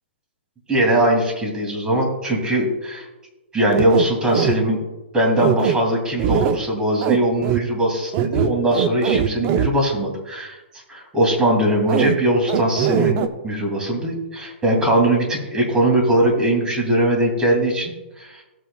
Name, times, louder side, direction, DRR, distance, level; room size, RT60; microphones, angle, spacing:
voice 1, 0.7-3.1 3.5-4.8 5.1-10.6 10.9-18.4, right 1 dB, 10° right, 0 dB, 2.6 m, -20 dB
sound 1, 3.7-4.5 5.4-5.8 6.2-6.6 7.0-7.2 7.4-7.6 8.1-9.7 11.9-12.2 12.5-13.3, right 9 dB, 30° right, 0.6 m, -20 dB
14.5 x 8.2 x 2.3 m, 1.1 s
hypercardioid pair, 150°, 6 cm